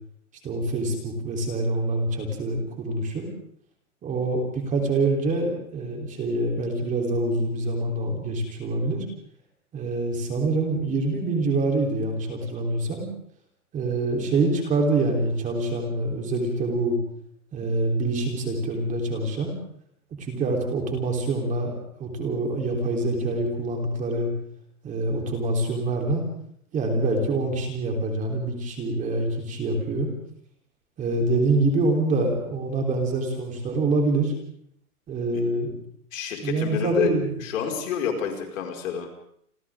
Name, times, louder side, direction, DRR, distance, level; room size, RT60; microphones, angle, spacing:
voice 1, 0.4-3.3 4.0-9.0 9.7-13.1 13.7-17.0 17.5-19.5 20.2-21.7 22.0-24.3 24.8-26.2 26.7-30.1 31.0-34.3 35.1-35.7 36.4-37.3, right 2 dB, 15° right, 1 dB, 3.7 m, -25 dB
voice 2, 36.1-37.1 37.4-39.1, left 8 dB, 55° left, 2 dB, 5.6 m, -28 dB
29.5 x 26.0 x 3.7 m, 0.67 s
hypercardioid pair, 160°, 46 cm